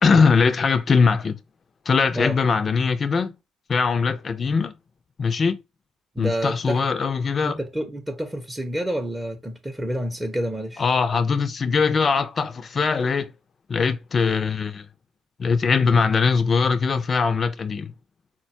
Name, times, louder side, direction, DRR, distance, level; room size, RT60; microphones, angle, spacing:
voice 1, 0.0-1.4 1.9-3.3 3.7-4.7 5.2-5.6 6.2-7.6 10.8-13.3 13.7-14.9 15.4-17.9, left 5 dB, 40° left, 0.5 m, -21 dB
voice 2, 6.1-6.8 7.4-10.8, equal, 15° right, 0.7 m, -28 dB
3.9 x 2.2 x 2.6 m
supercardioid pair, 70°, 0 cm